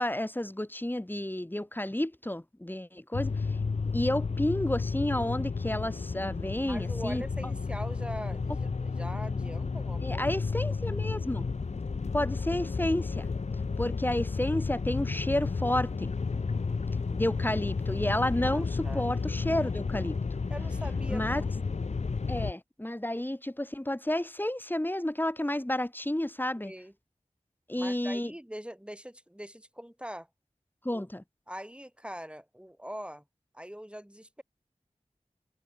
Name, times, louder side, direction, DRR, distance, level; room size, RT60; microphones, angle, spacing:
voice 1, 0.0-3.3 3.9-7.2 10.0-11.5 12.1-13.3 13.8-16.1 17.1-20.2 21.1-21.4 22.3-26.7 27.7-28.3 30.9-31.2, left 1 dB, 15° left, 1.8 m, -31 dB
sound 1, 3.1-22.5, left 4 dB, 60° left, 0.6 m, -32 dB
voice 2, 6.7-10.4 18.4-19.1 20.5-21.5 26.6-26.9 27.8-30.3 30.9-31.0 31.5-33.2 33.5-34.4, equal, 10° right, 7.0 m, -42 dB
wide cardioid pair, 50°, 13 cm